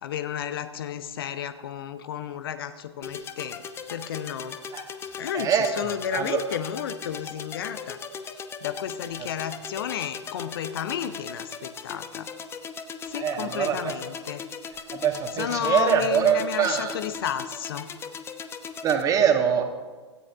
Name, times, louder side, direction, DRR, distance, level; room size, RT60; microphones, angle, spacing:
voice 1, 0.0-3.6 3.9-4.6 5.2-8.0 8.3-12.3 13.1-14.4 15.3-17.9, left 9 dB, 55° left, 11 dB, 0.8 m, -32 dB
sound 1, 3.0-19.0, left 6 dB, 15° left, 0.8 m, -38 dB
voice 2, 5.3-6.4 13.1-13.9 14.9-16.9 18.8-19.6, right 8 dB, 25° right, 5 dB, 1.8 m, -24 dB
17.0 x 13.5 x 3.6 m, 1.4 s
figure-of-eight pair, 105°, 15 cm